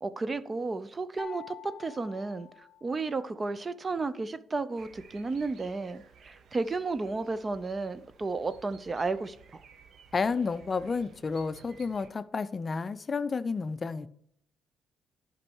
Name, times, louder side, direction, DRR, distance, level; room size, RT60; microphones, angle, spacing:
voice 1, 0.0-2.5 2.8-9.6, right 3 dB, 30° right, 0.5 m, -33 dB
sound 1, 1.2-3.3, left 8 dB, 15° left, 0.8 m, -47 dB
sound 2, 4.8-12.1, right 6 dB, 60° right, 0.9 m, -56 dB
voice 2, 10.1-14.1, left 4 dB, 35° left, 0.4 m, -31 dB
10.5 x 5.3 x 4.6 m
cardioid pair, 90°, 0 cm